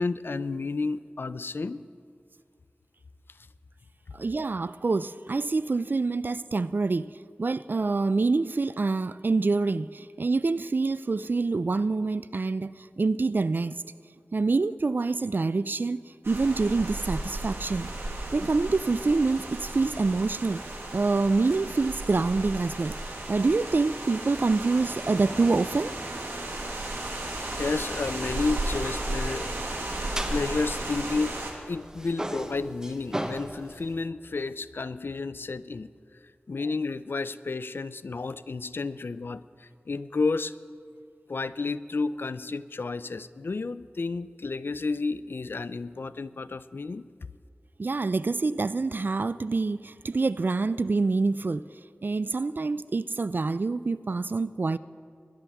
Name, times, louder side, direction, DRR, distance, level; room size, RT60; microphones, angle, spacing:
voice 1, 0.0-1.9 27.2-29.5 30.3-31.4 31.7-35.9 36.5-40.5 41.3-47.1, left 3 dB, 65° left, 0.4 m, -31 dB
voice 2, 4.1-7.1 7.4-13.8 14.3-16.0 16.3-17.9 18.3-20.6 20.9-22.9 23.3-25.9 47.8-51.6 52.0-54.8, right 3 dB, 55° right, 0.3 m, -26 dB
sound 1, 16.2-31.5, right 2 dB, 90° right, 1.7 m, -34 dB
sound 2, 27.3-31.6 31.8-33.9, right 1 dB, 15° right, 0.9 m, -38 dB
20.0 x 11.5 x 3.5 m
wide cardioid pair, 55°, 4 cm